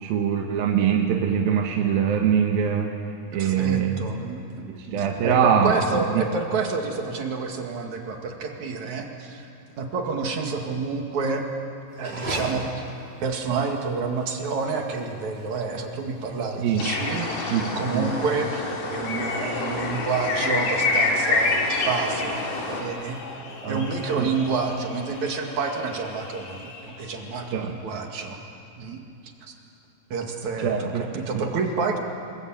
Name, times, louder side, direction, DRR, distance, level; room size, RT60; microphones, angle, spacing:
voice 1, 0.0-2.9 3.3-4.0 4.7-5.8 6.2-6.3 16.6-16.9 17.5-18.1 23.6-23.9 24.2-24.3 27.5-27.9 30.6-31.0, right 8 dB, 75° right, 2 dB, 3.1 m, -23 dB
voice 2, 3.3-9.5 9.8-11.5 12.0-12.8 13.2-18.6 18.9-22.4 22.7-23.2 23.7-28.4 28.8-29.0 29.5-29.6 30.1-32.0, right 4 dB, 55° right, 2 dB, 3.2 m, -29 dB
sound 1, 11.9-18.0, right 1 dB, 30° right, 5.9 m, -39 dB
sound 2, 16.8-22.8, left 3 dB, 80° left, 5.2 m, -26 dB
sound 3, 20.3-27.6, left 3 dB, 50° left, 3.7 m, -41 dB
26.5 x 22.5 x 8.9 m, 2.9 s
omnidirectional pair, 4.3 m